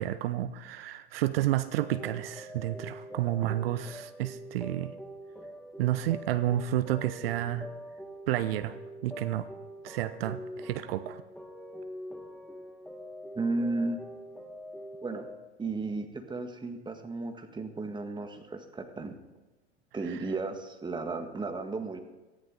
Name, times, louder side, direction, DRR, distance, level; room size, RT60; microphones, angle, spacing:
voice 1, 0.0-5.0 5.8-7.7 8.3-9.5 9.8-11.2 20.1-20.2, right 13 dB, 55° right, 13 dB, 0.8 m, -30 dB
sound 1, 1.8-15.4, equal, ahead, 1.4 m, -44 dB
voice 2, 13.4-14.0 15.0-15.3 15.6-19.1 19.9-22.0, right 3 dB, 15° right, 6 dB, 1.8 m, -34 dB
19.0 x 14.0 x 3.9 m, 1.2 s
figure-of-eight pair, 90°, 34 cm